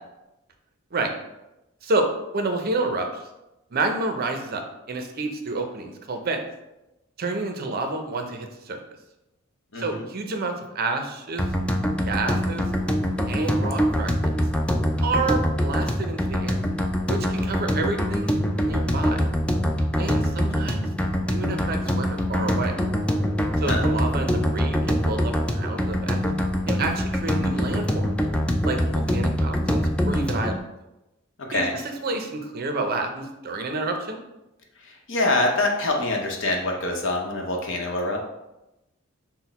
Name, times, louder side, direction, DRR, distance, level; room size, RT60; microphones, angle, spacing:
voice 1, 1.8-3.2 3.7-4.6 4.9-6.4 7.2-8.8 9.8-11.5 12.1-12.7 13.3-14.3 15.0-16.6 17.1-19.2 20.0-20.9 21.3-22.8 23.6-26.2 26.7-28.1 28.6-30.6 31.5-34.2, right 3 dB, 50° right, 4 dB, 0.6 m, -29 dB
voice 2, 9.7-10.1 23.6-23.9 31.5-31.8 34.8-38.3, left 2 dB, 65° left, 1 dB, 0.8 m, -25 dB
sound 1, 11.4-30.6, equal, 5° left, 0.3 m, -24 dB
6.0 x 2.1 x 4.1 m, 0.95 s
head